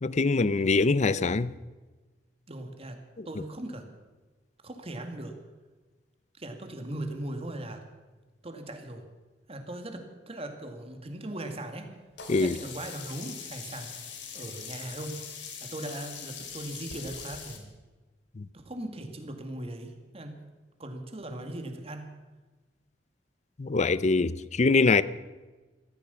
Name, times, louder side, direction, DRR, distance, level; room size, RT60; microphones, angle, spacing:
voice 1, 0.0-1.5 12.3-12.6 18.4-18.5 23.6-25.0, left 3 dB, 40° left, 0.5 m, -23 dB
voice 2, 2.5-3.0 3.3-3.9 4.6-5.3 6.4-7.8 8.4-9.1 9.5-11.9 12.4-15.1 15.6-17.7 18.5-20.4 20.8-22.1, right 1 dB, 35° right, 2.1 m, -39 dB
Sink (filling or washing), 12.2-17.6, left 6 dB, 75° left, 2.9 m, -42 dB
15.0 x 13.5 x 7.0 m
head